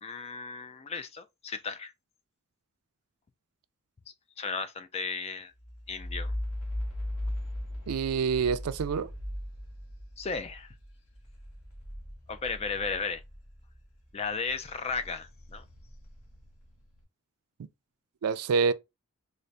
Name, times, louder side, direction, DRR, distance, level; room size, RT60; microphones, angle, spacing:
voice 1, 0.0-1.9 4.4-5.5 5.9-6.3 10.2-10.7 12.3-13.2 14.1-15.6, left 5 dB, 30° left, 0.3 m, -35 dB
low fidgetstop, 5.6-13.8 14.2-16.8, left 1 dB, 80° left, 1.3 m, -39 dB
voice 2, 7.9-9.1 18.2-18.7, right 5 dB, 85° right, 0.4 m, -26 dB
3.9 x 2.4 x 3.2 m
head